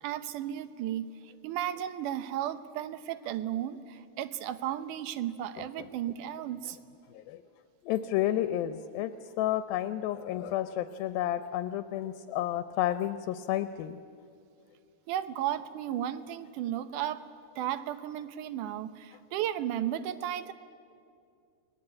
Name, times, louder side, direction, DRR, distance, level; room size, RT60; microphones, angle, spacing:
voice 1, 0.0-6.8 15.1-17.2 17.6-20.5, right 11 dB, 70° right, 13 dB, 2.2 m, -34 dB
voice 2, 7.1-7.4 7.8-9.1 9.4-14.0, left 12 dB, 80° left, 11 dB, 2.5 m, -31 dB
29.5 x 20.0 x 8.7 m, 2.4 s
omnidirectional pair, 4.2 m